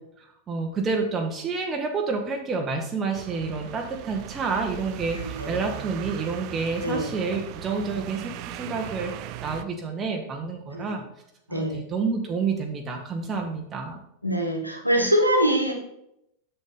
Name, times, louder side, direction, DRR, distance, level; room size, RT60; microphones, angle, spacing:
voice 1, 0.2-8.3 8.6-9.1 9.4-11.0 11.5-14.0, right 4 dB, 20° right, 1 dB, 1.1 m, -29 dB
sound 1, 3.1-9.6, right 11 dB, 40° right, 0.5 m, -38 dB
voice 2, 5.2-5.6 6.8-7.1 10.7-11.0 11.5-11.8 14.2-15.7, equal, 90° right, 1 dB, 1.6 m, -24 dB
7.5 x 6.8 x 3.7 m, 0.78 s
figure-of-eight pair, 90°, 0 cm